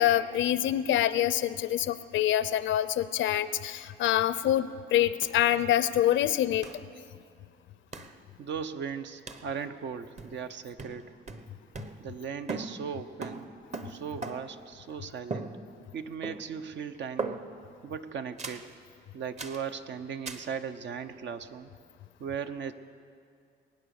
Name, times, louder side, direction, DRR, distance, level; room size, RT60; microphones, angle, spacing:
voice 1, 0.0-6.7, left 12 dB, 70° left, 15 dB, 0.6 m, -26 dB
Hits and Smashes, 5.2-5.3 5.6-5.7 6.6-6.8 7.9-8.2 9.3-9.5 10.2-10.5 10.8-12.2 12.5-14.7 15.3-16.0 16.2-16.7 17.2-17.7 18.4-18.7 19.4-19.7 20.3-20.5, right 3 dB, 35° right, 1.0 m, -39 dB
voice 2, 8.4-11.1 12.0-13.5 13.8-15.5 15.9-17.4 17.8-18.7 19.1-21.7 22.2-22.7, right 7 dB, 65° right, 9 dB, 0.9 m, -37 dB
22.0 x 9.3 x 6.5 m, 2.3 s
cardioid pair, 90°, 20 cm